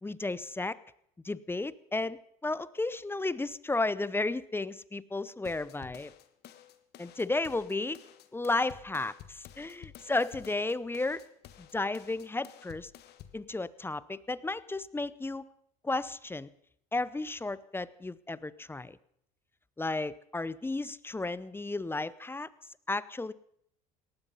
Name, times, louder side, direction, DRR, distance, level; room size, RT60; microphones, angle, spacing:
voice 1, 0.0-0.8 1.2-6.1 7.0-8.0 8.3-11.2 11.7-12.9 13.3-15.4 15.8-16.5 16.9-19.0 19.8-22.5 22.9-23.3, left 2 dB, 10° left, 19 dB, 0.7 m, -33 dB
sound 1, 5.4-13.4, left 11 dB, 60° left, 1.4 m, -52 dB
18.0 x 13.0 x 5.5 m, 0.71 s
hypercardioid pair, 75°, 19 cm